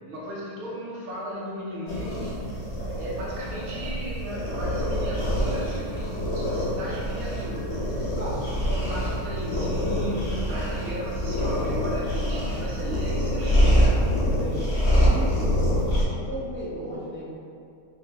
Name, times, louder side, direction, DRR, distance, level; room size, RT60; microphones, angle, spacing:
voice 1, 0.1-2.5 2.9-8.1 8.7-14.1 15.4-15.5, equal, 65° right, -6 dB, 1.2 m, -35 dB
sound 1, 1.9-16.0, equal, 55° left, 0.9 m, -25 dB
voice 2, 8.2-8.8 14.3-14.7 15.0-17.3, equal, 10° left, -12 dB, 0.6 m, -36 dB
3.3 x 2.0 x 3.8 m, 2.4 s
omnidirectional pair, 1.7 m